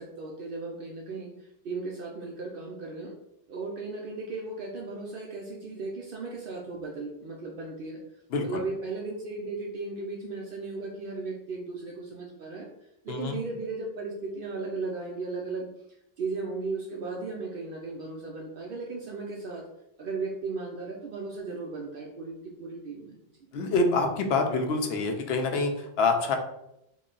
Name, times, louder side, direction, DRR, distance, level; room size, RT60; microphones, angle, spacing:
voice 1, 0.0-3.1 3.5-8.0 8.4-12.7 13.0-15.7 16.2-19.7 20.0-23.2, right 3 dB, 65° right, 0 dB, 0.7 m, -36 dB
voice 2, 8.3-8.6 13.1-13.4 23.5-26.4, left 3 dB, 80° left, 4 dB, 0.9 m, -26 dB
3.9 x 2.2 x 3.8 m, 0.82 s
omnidirectional pair, 1.0 m